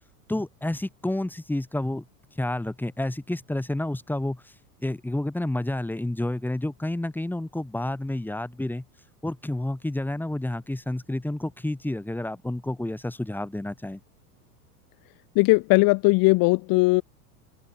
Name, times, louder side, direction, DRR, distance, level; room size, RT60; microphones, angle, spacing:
voice 1, 0.3-2.1 2.3-4.5 4.8-8.8 9.2-14.0, left 1 dB, 5° left, 1.8 m, -30 dB
voice 2, 15.3-17.0, left 26 dB, 45° left, 1.1 m, -19 dB
open air
hypercardioid pair, 110°, 47 cm